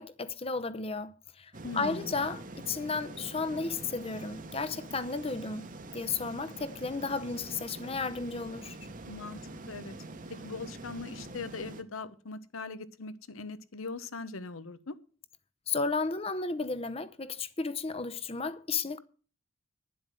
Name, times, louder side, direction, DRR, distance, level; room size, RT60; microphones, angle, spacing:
voice 1, 0.0-5.7 5.9-8.8 15.7-19.0, left 4 dB, 30° left, 0.7 m, -33 dB
sound 1, 1.5-11.8, right 2 dB, 40° right, 1.0 m, -45 dB
voice 2, 1.6-2.1 9.0-9.4 9.7-9.9 10.4-14.9, left 3 dB, 80° left, 1.0 m, -40 dB
11.0 x 7.8 x 7.6 m
head